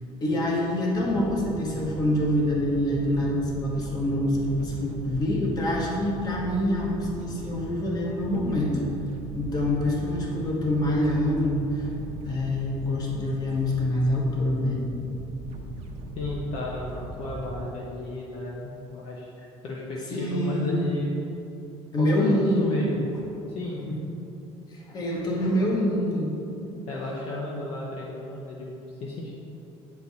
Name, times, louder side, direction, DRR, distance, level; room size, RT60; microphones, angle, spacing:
voice 1, 0.2-8.8 9.3-11.9 12.2-14.9 20.1-20.8 21.9-22.8 23.9-24.0 24.7-26.3, left 1 dB, 35° left, -2 dB, 1.2 m, -26 dB
sound 1, 0.9-17.7, right 2 dB, 55° right, 0.8 m, -39 dB
voice 2, 16.2-19.3 19.6-21.1 22.0-23.1 23.5-23.9 26.9-29.3, left 2 dB, 50° left, -3 dB, 0.8 m, -33 dB
8.3 x 4.5 x 4.1 m, 2.8 s
cardioid pair, 165°, 12 cm